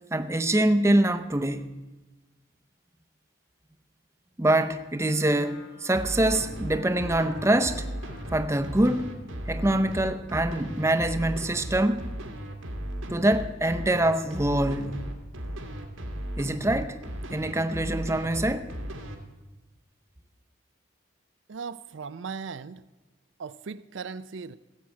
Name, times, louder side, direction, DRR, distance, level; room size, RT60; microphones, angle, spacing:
voice 1, 0.1-1.7 4.4-7.9 8.3-9.1 9.5-12.1 13.1-15.0 16.4-17.0 17.3-18.7, right 1 dB, 15° right, 0.6 m, -24 dB
Wind instrument woodwind instrument, 4.9-10.2, left 2 dB, 55° left, 1.8 m, -47 dB
sound 1, 5.9-19.2, equal, 90° right, 2.1 m, -36 dB
voice 2, 21.5-22.8 23.4-24.5, right 5 dB, 65° right, 0.4 m, -38 dB
16.0 x 7.5 x 8.3 m
head